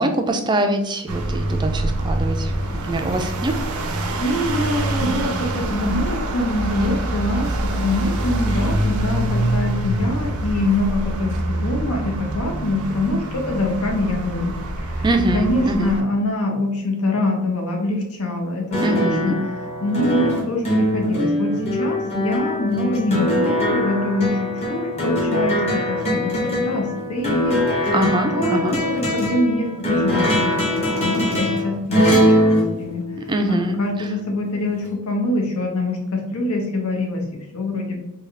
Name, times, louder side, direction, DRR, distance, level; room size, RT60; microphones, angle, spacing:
voice 1, 0.0-3.6 15.0-16.0 18.8-19.3 27.9-28.8 33.3-34.1, right 1 dB, 20° right, 5 dB, 0.3 m, -23 dB
sound 1, 1.1-16.0, right 1 dB, 80° right, 0.5 m, -25 dB
voice 2, 4.2-15.1 15.3-19.4 19.8-27.6 27.8-27.9 28.3-30.5 30.9-33.0 33.5-38.0, left 2 dB, 85° left, 1 dB, 0.9 m, -24 dB
sound 2, 18.7-33.6 34.9-35.0, left 1 dB, 30° left, 0.9 m, -22 dB
3.5 x 2.3 x 3.2 m, 0.84 s
head